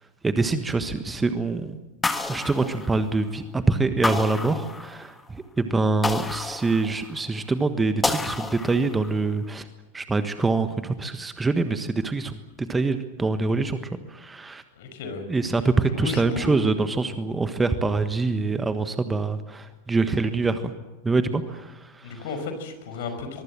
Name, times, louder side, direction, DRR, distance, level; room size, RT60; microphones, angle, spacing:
voice 1, 0.2-1.8 2.3-9.7 9.9-13.8 14.1-14.6 15.3-20.7 21.0-22.2, right 3 dB, 10° right, 10 dB, 1.4 m, -25 dB
sound 1, 2.0-3.4 4.0-5.2 6.0-7.3 8.0-9.2, left 3 dB, 10° left, 1.7 m, -30 dB
voice 2, 14.8-15.2 16.0-16.5 22.0-23.4, left 4 dB, 55° left, 8 dB, 5.3 m, -33 dB
23.5 x 23.0 x 7.6 m, 1.1 s
figure-of-eight pair, 90°, 0 cm